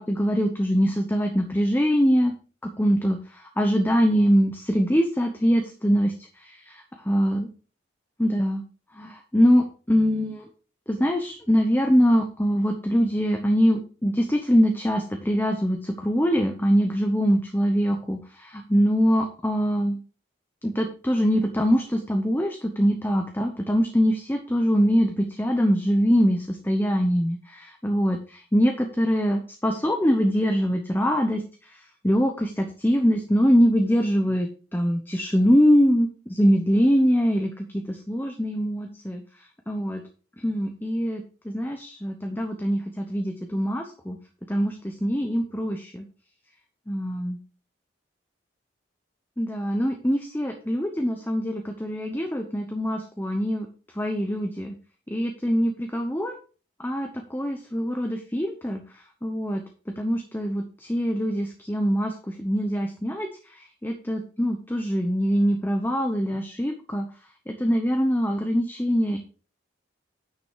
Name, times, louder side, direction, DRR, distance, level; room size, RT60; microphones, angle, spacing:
voice 1, 0.0-2.3 2.6-7.5 8.2-8.6 8.9-10.5 10.9-20.0 20.6-28.2 28.5-31.4 32.0-39.2 39.7-40.0 40.4-44.2 44.5-46.0 46.9-47.4 49.4-53.7 54.0-54.7 55.1-56.3 56.8-58.8 59.2-59.6 60.0-67.1 67.5-69.2, equal, 10° left, 3 dB, 0.9 m, -23 dB
9.5 x 6.1 x 4.6 m, 0.37 s
head